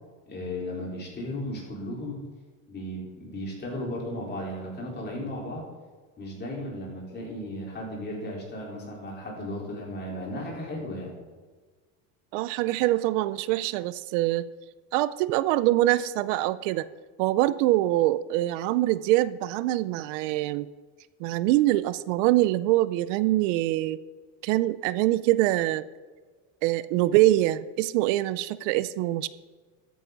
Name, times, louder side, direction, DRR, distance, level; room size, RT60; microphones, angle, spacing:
voice 1, 0.3-2.2 2.7-5.6 6.2-11.2, left 1 dB, 30° left, -2 dB, 4.3 m, -35 dB
voice 2, 12.3-14.4 14.9-16.9 17.2-20.7 21.2-24.0 24.4-25.9 26.6-29.3, right 16 dB, 85° right, 16 dB, 0.6 m, -24 dB
13.5 x 9.6 x 4.0 m, 1.4 s
cardioid pair, 125°, 36 cm